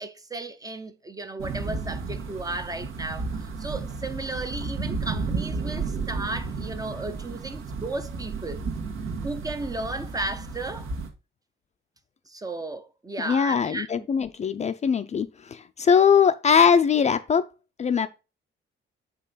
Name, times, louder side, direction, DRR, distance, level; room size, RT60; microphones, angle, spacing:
voice 1, 0.0-8.6 9.2-10.9 12.3-14.1, right 2 dB, 15° right, 0.5 m, -34 dB
sound 1, 1.4-11.1, right 4 dB, 80° right, 1.6 m, -33 dB
voice 2, 13.2-17.5 17.8-18.1, left 7 dB, 35° left, 0.4 m, -21 dB
6.5 x 5.4 x 3.9 m
wide cardioid pair, 175°, 21 cm